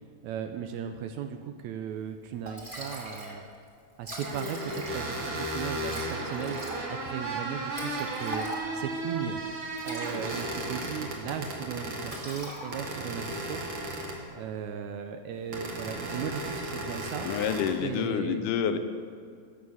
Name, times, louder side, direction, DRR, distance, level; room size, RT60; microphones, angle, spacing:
voice 1, 0.2-3.4 4.0-6.6 6.9-8.5 8.7-9.4 9.8-13.6 14.3-17.3 17.8-18.4, right 8 dB, 80° right, 7 dB, 1.8 m, -36 dB
Liquid, 2.1-2.2 2.5-3.4 3.7-3.8 3.9-5.2 5.9-8.9 9.6-11.1 11.4-11.7 12.0-13.1, right 1 dB, 15° right, 1.6 m, -41 dB
sound 1, 4.2-12.2 12.7-14.3 15.5-17.7, right 2 dB, 50° right, 2.2 m, -35 dB
voice 2, 17.2-18.8, left 8 dB, 80° left, 9 dB, 2.2 m, -28 dB
16.0 x 6.3 x 7.2 m, 2.2 s
omnidirectional pair, 3.7 m